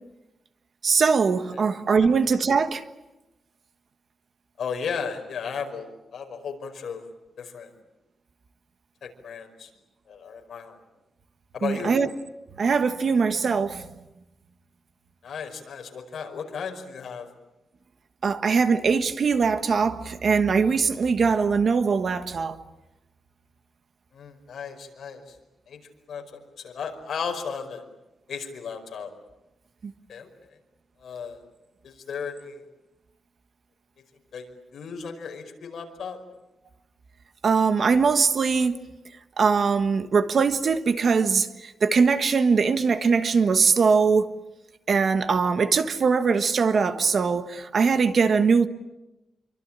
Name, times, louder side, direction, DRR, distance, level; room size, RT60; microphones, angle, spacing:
voice 1, 0.8-2.8 11.6-12.1 12.6-13.8 18.2-22.6 29.8-29.9 37.4-38.8 39.4-44.3 44.9-48.7, right 5 dB, 45° right, 1.3 m, -21 dB
voice 2, 4.6-7.0 7.4-7.7 9.0-9.7 10.1-10.8 11.5-12.0 15.2-17.3 24.1-25.4 25.7-25.8 26.1-26.2 26.6-27.8 28.3-29.1 30.1-30.3 31.0-31.4 31.8-32.6 34.3-36.2, left 6 dB, 60° left, 5.2 m, -35 dB
27.0 x 24.5 x 8.8 m
wide cardioid pair, 170°, 0 cm